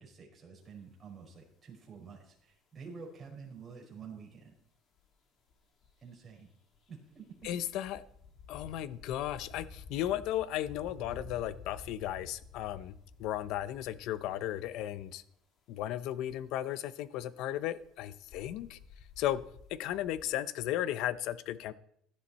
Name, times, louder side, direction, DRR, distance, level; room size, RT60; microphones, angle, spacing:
voice 1, 0.0-4.5 6.0-6.5 6.9-7.3 7.7-7.9, right 5 dB, 25° right, 5.0 m, -49 dB
sound 1, 1.4-1.5 2.4-2.5 2.8-2.9 4.6-4.7 5.0-5.1 5.5-5.6 5.8-6.3 6.7-14.7 15.0-15.1 16.2-16.4 17.5-20.2, left 4 dB, 45° left, 3.1 m, -52 dB
voice 2, 7.4-8.0 8.5-12.9 13.2-15.2 15.7-18.8 19.2-19.4 19.7-21.7, left 12 dB, 65° left, 0.8 m, -35 dB
17.0 x 11.5 x 4.2 m
cardioid pair, 150°, 0 cm